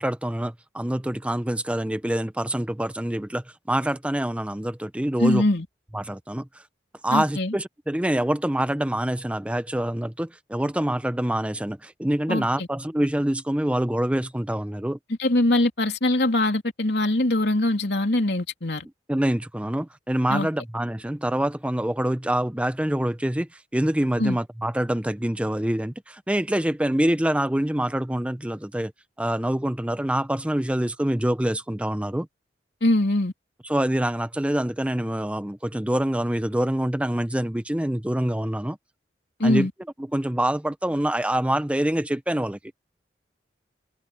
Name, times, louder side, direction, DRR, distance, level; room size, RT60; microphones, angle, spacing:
voice 1, 0.0-5.4 5.9-6.5 7.0-15.0 19.1-28.9 29.2-32.3 33.6-38.8 39.4-39.7 40.1-42.6, right 1 dB, 5° right, 0.7 m, -25 dB
voice 2, 5.2-5.6 7.1-7.5 12.3-12.7 15.2-18.8 20.3-20.5 24.2-24.4 32.8-33.3 39.4-39.7, left 1 dB, 70° left, 3.3 m, -22 dB
head